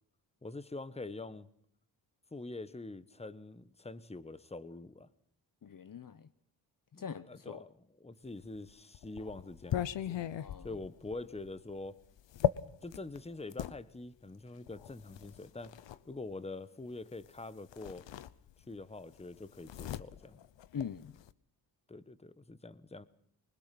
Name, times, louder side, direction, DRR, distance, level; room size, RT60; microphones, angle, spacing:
voice 1, 0.4-1.5 2.3-5.1 6.9-7.7 8.0-10.2 10.6-12.0 12.8-18.1 18.7-20.4 21.9-23.0, left 2 dB, 15° left, 1.3 m, -45 dB
voice 2, 5.6-6.3 6.9-7.6 10.3-10.7 20.7-21.2, left 7 dB, 45° left, 1.0 m, -43 dB
sound 1, 8.4-13.8 14.7-16.0 17.2-17.4 17.7-18.8 19.1-21.3, left 11 dB, 70° left, 0.9 m, -38 dB
23.5 x 21.0 x 6.0 m
cardioid pair, 60°, 46 cm